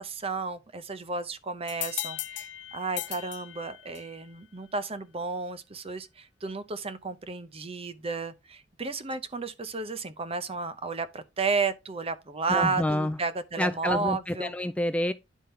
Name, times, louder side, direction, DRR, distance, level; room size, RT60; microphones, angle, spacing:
voice 1, 0.0-14.6, right 4 dB, 30° right, 0.7 m, -32 dB
sound 1, 1.7-4.2, left 14 dB, 65° left, 0.6 m, -37 dB
voice 2, 12.5-13.2 13.6-15.1, left 1 dB, 5° left, 0.3 m, -28 dB
10.0 x 3.7 x 4.4 m
head